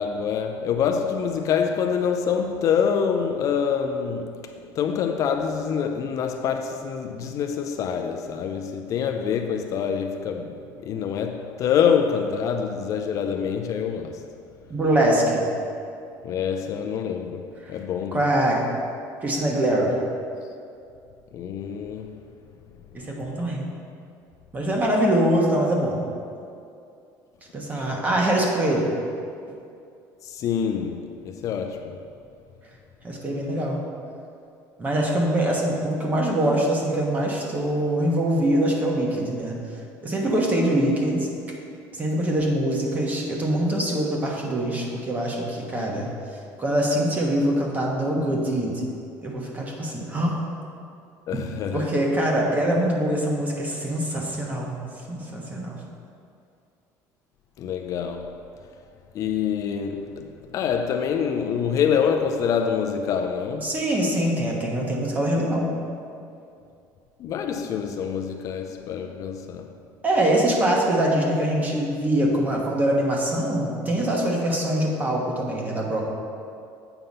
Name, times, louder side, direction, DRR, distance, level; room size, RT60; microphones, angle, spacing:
voice 1, 0.0-14.3 16.2-18.2 21.3-22.2 30.2-32.0 51.3-52.0 57.6-58.4 59.1-63.8 67.2-69.7, left 7 dB, 45° left, 0.5 m, -26 dB
voice 2, 14.7-15.5 18.1-18.6 19.2-20.0 22.9-23.7 24.5-26.0 27.5-28.9 33.0-33.8 34.8-39.6 40.0-41.3 41.9-46.1 46.6-48.8 49.2-50.4 51.7-54.8 55.1-55.8 63.6-65.8 70.0-76.0, right 1 dB, 20° right, 1.3 m, -23 dB
8.0 x 5.7 x 5.4 m
cardioid pair, 150°, 8 cm